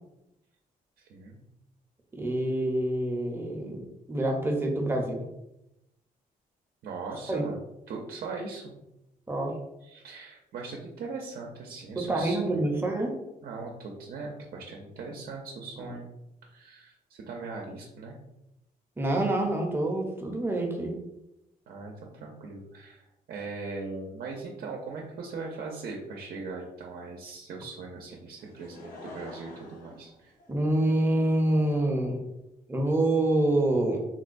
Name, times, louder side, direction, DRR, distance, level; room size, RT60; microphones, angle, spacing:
voice 1, 1.0-1.4 6.8-7.5 7.9-8.7 9.8-12.6 13.4-16.1 16.5-18.2 21.7-30.3, right 4 dB, 70° right, 0 dB, 0.5 m, -40 dB
voice 2, 2.1-5.3 7.3-7.4 9.3-9.5 11.9-13.1 15.8-15.9 19.0-21.0 30.5-32.2 32.7-34.0, right 1 dB, 15° right, 1 dB, 0.6 m, -26 dB
Laughter / Crowd, 28.4-31.0 31.7-31.8, left 2 dB, 70° left, 0.7 m, -47 dB
3.7 x 2.1 x 2.5 m, 0.89 s
cardioid pair, 125°, 15 cm